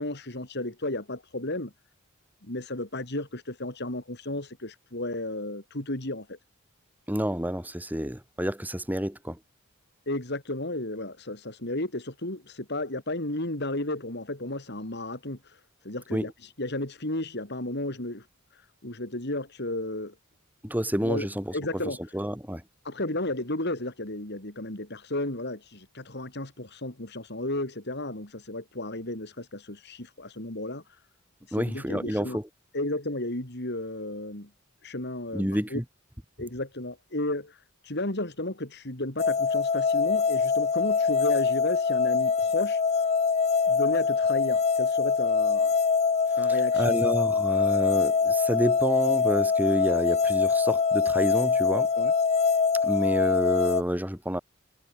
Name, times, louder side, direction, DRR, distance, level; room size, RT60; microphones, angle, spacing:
voice 1, 0.0-1.7 2.4-6.3 10.1-15.4 15.8-16.3 16.6-18.2 18.8-20.1 21.0-21.3 21.5-22.0 22.9-30.8 31.6-32.4 32.7-34.5 34.8-35.5 35.7-35.8 36.4-37.5 37.9-42.8 43.7-45.7 46.4-47.0 52.0-52.1, left 1 dB, 50° left, 4.0 m, -33 dB
voice 2, 7.1-9.4 16.1-16.3 20.6-22.6 31.5-32.5 35.3-35.8 46.5-51.9 52.8-54.4, equal, 10° right, 5.1 m, -29 dB
sound 1, 39.2-53.8, left 5 dB, 30° left, 0.5 m, -24 dB
head